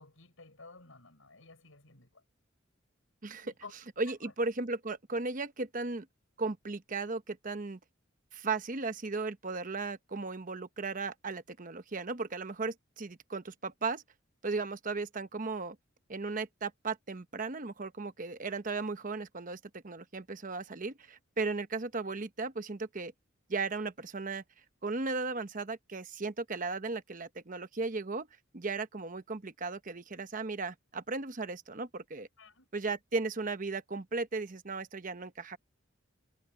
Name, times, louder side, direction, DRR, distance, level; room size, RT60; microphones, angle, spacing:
voice 1, 0.0-2.2 3.4-3.7 4.1-4.3 32.4-32.7, left 4 dB, 85° left, 5.8 m, -53 dB
voice 2, 3.2-3.5 4.0-6.1 6.4-7.8 8.3-14.0 14.4-15.8 16.1-23.1 23.5-24.4 24.8-28.3 28.5-32.3 32.7-35.6, right 3 dB, 40° right, 1.0 m, -36 dB
head